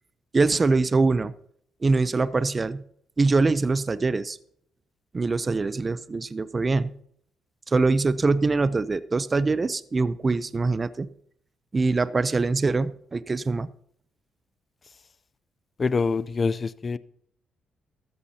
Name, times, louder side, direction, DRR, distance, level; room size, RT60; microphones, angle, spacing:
voice 1, 0.3-1.3 1.8-2.8 3.2-4.4 5.1-6.9 7.7-11.1 11.7-13.7, right 3 dB, 30° right, 15 dB, 0.5 m, -23 dB
voice 2, 15.8-17.0, left 4 dB, 35° left, 17 dB, 0.5 m, -25 dB
14.5 x 13.5 x 2.8 m, 0.66 s
cardioid pair, 90°, 0 cm